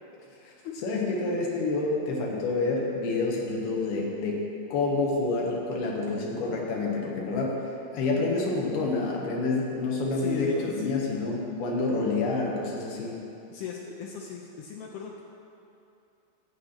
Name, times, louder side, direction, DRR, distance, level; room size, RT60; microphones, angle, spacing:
voice 1, 0.8-4.4 4.7-7.6 7.9-13.1, left 3 dB, 65° left, -2 dB, 3.2 m, -28 dB
voice 2, 10.1-11.0 13.5-15.2, left 6 dB, 85° left, -1 dB, 2.2 m, -37 dB
11.5 x 7.9 x 5.8 m, 2.7 s
omnidirectional pair, 5.3 m